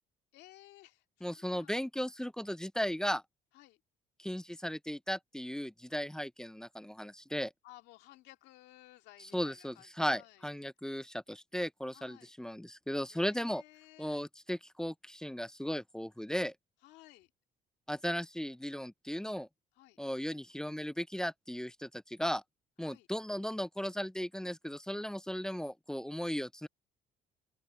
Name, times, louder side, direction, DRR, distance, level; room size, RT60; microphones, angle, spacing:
voice 1, 0.3-1.7 3.5-3.8 7.6-10.5 11.9-12.3 13.1-14.2 16.8-17.3 19.7-20.0 22.8-23.1, left 17 dB, 90° left, 2.0 m, -57 dB
voice 2, 1.2-3.2 4.2-7.5 9.3-13.6 14.0-16.5 17.9-19.5 20.0-22.4 22.8-26.7, equal, 5° left, 0.3 m, -36 dB
open air
cardioid pair, 110°, 17 cm